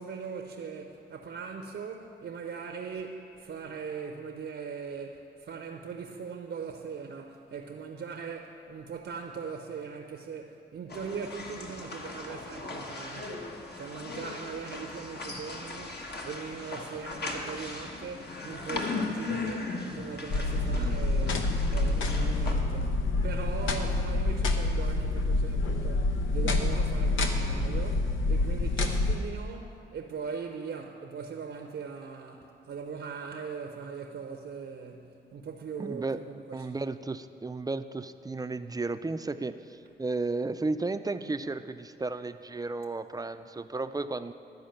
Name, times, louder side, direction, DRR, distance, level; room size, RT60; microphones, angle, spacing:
voice 1, 0.0-23.0 23.2-36.7, right 5 dB, 65° right, 3 dB, 0.7 m, -40 dB
sound 1, 10.9-22.5, left 3 dB, 55° left, 1.3 m, -38 dB
sound 2, 20.3-29.2, left 2 dB, 75° left, 0.8 m, -27 dB
voice 2, 35.8-36.2 36.5-44.3, right 3 dB, 20° right, 10 dB, 0.4 m, -34 dB
12.0 x 4.8 x 7.8 m, 2.4 s
cardioid pair, 55°, 20 cm